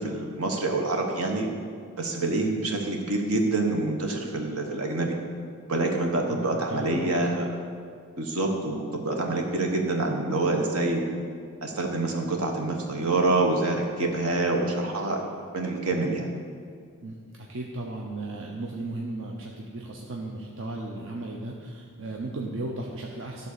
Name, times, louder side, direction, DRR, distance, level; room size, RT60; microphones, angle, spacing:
voice 1, 0.0-1.5 2.0-5.1 5.7-7.5 8.2-11.0 11.6-15.2 15.5-16.3, right 2 dB, 75° right, 2 dB, 1.3 m, -26 dB
voice 2, 6.3-7.2 17.0-23.5, right 2 dB, 60° right, -1 dB, 0.8 m, -35 dB
12.0 x 4.1 x 6.7 m, 2.1 s
head